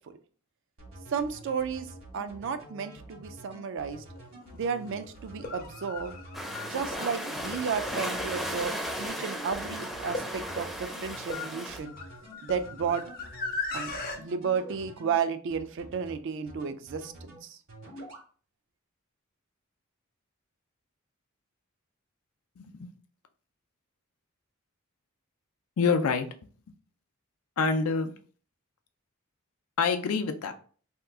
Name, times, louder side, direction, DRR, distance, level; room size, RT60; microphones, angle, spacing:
sound 1, 0.8-15.1 15.5-16.1 16.5-17.4 17.7-18.2, right 1 dB, 80° right, 1.4 m, -48 dB
voice 1, 1.1-1.9 2.1-4.0 4.5-6.2 6.7-11.9 12.4-13.0 13.7-17.6, right 6 dB, 60° right, 10 dB, 0.4 m, -33 dB
sound 2, 4.2-4.3 5.3-14.2, left 4 dB, 45° left, 0.6 m, -39 dB
sound 3, 6.3-11.8, equal, ahead, 0.5 m, -35 dB
voice 2, 22.6-22.9 25.8-26.3 27.6-28.1 29.8-30.5, left 5 dB, 90° left, 7 dB, 0.4 m, -26 dB
2.9 x 2.3 x 3.4 m, 0.43 s
head